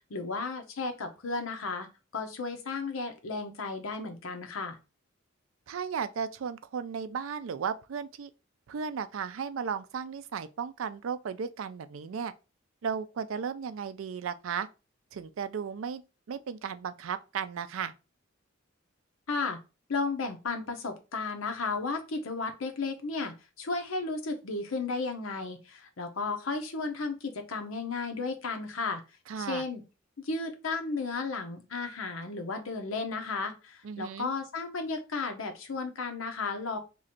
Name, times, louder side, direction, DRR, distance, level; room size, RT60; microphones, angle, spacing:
voice 1, 0.1-1.9 2.1-4.8 19.3-19.6 19.9-29.0 29.4-29.8 30.2-36.8, left 3 dB, 85° left, 0.8 m, -34 dB
voice 2, 5.7-8.3 8.7-12.3 12.8-14.7 15.1-16.0 16.3-17.9 29.3-29.6 33.8-34.3, right 6 dB, 75° right, 0.4 m, -35 dB
3.0 x 2.5 x 4.2 m
head